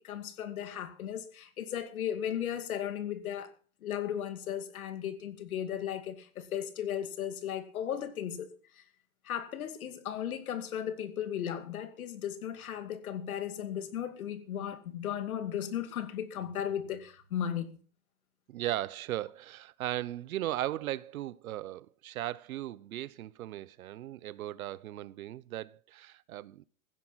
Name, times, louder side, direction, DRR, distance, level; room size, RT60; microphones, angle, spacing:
voice 1, 0.0-3.5 3.8-8.8 9.2-17.8, left 9 dB, 90° left, 2.5 m, -36 dB
voice 2, 18.5-26.6, right 14 dB, 80° right, 0.9 m, -37 dB
16.0 x 10.5 x 5.8 m
supercardioid pair, 170°, 41 cm